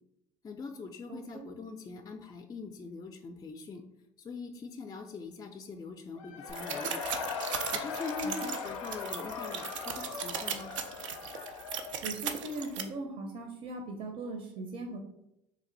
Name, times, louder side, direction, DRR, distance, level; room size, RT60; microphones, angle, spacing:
voice 1, 0.4-3.8 4.2-7.0 7.7-10.7, left 4 dB, 25° left, 4 dB, 0.4 m, -42 dB
voice 2, 1.1-1.5 8.2-8.3 12.0-15.0, right 2 dB, 55° right, 4 dB, 0.7 m, -39 dB
Cheering / Crowd, 6.2-12.9, left 6 dB, 90° left, 0.4 m, -40 dB
sound 1, 6.5-12.8, right 7 dB, 90° right, 0.4 m, -38 dB
3.2 x 2.6 x 3.9 m, 0.85 s
hypercardioid pair, 80°, 16 cm